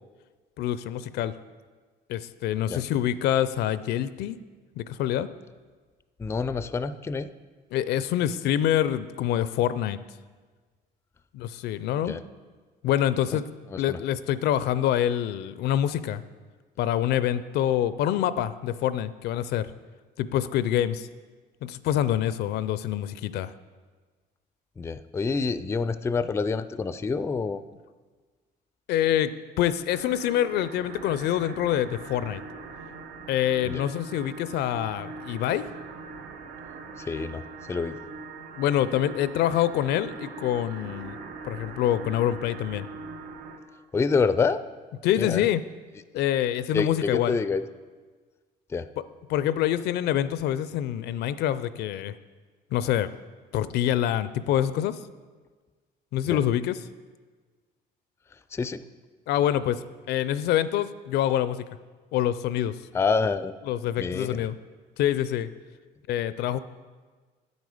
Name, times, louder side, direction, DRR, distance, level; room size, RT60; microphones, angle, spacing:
voice 1, 0.6-1.3 2.1-4.4 4.8-5.3 7.7-10.0 11.3-12.2 12.8-13.5 13.8-16.2 16.8-19.7 20.2-21.1 21.6-23.5 28.9-32.4 33.3-35.6 38.5-41.2 41.4-42.9 45.0-45.6 46.1-47.4 49.0-49.1 49.3-52.1 52.7-53.1 53.5-55.0 56.1-56.8 59.3-59.8 60.1-61.6 62.1-62.8 63.7-64.6 65.0-65.5 66.1-66.6, left 11 dB, 75° left, 15 dB, 0.5 m, -26 dB
voice 2, 6.2-7.3 12.1-12.2 13.7-14.0 24.8-27.6 33.7-33.8 37.1-37.4 37.7-38.0 43.9-44.6 45.2-45.4 46.7-47.6 48.7-48.9 56.3-56.4 58.5-58.8 62.9-63.5 64.0-64.5, left 4 dB, 15° left, 13 dB, 0.3 m, -27 dB
sound 1, 29.9-43.6, right 4 dB, 85° right, 1.1 m, -41 dB
9.1 x 8.1 x 5.0 m, 1.4 s
cardioid pair, 110°, 17 cm